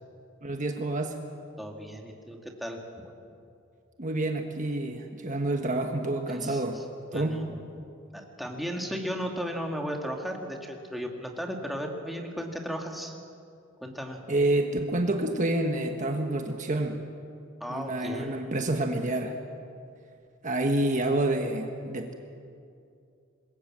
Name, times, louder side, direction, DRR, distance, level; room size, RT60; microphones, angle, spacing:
voice 1, 0.4-1.2 4.0-6.8 7.1-7.4 14.3-17.0 17.7-19.4 20.4-22.1, right 2 dB, 35° right, 4 dB, 1.4 m, -28 dB
voice 2, 1.6-3.2 6.3-6.8 7.1-7.4 7.8-13.2 13.8-14.2 17.6-18.6, equal, ahead, 1 dB, 2.2 m, -36 dB
26.0 x 21.5 x 7.5 m, 2.5 s
head